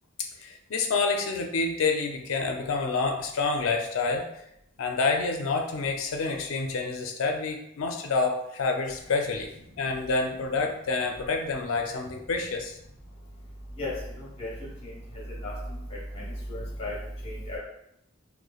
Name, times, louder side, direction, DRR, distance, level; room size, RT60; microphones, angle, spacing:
voice 1, 0.4-4.4 4.8-9.5 9.8-12.8, left 4 dB, 80° left, 3 dB, 0.4 m, -28 dB
voice 2, 14.2-14.5 14.8-14.9 15.4-15.5 16.1-16.9 17.2-17.6, left 1 dB, 30° left, -5 dB, 0.9 m, -34 dB
3.0 x 2.1 x 2.3 m, 0.78 s
head